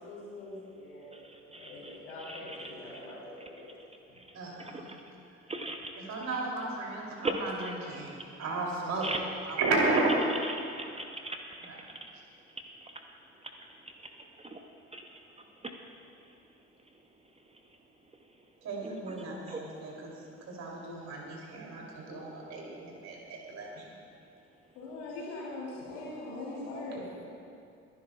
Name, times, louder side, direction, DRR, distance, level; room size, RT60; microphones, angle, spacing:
voice 1, 0.0-1.1 1.5-3.7 4.1-4.2 24.8-27.1, left 2 dB, 70° left, -6 dB, 3.5 m, -42 dB
voice 2, 1.1-3.0 4.1-5.0 5.5-6.0 7.2-7.7 9.0-9.2 10.3-12.1 12.8-13.0 13.7-14.1 14.4-14.6 14.9-15.7 18.8-19.6, right 2 dB, 15° right, 4 dB, 0.9 m, -40 dB
voice 3, 4.3-4.9 6.1-8.1 8.4-9.1 9.4-10.1 18.6-20.1 20.5-23.8, right 3 dB, 45° right, -2 dB, 3.2 m, -33 dB
24.0 x 11.5 x 2.4 m, 2.5 s
figure-of-eight pair, 50°, 36 cm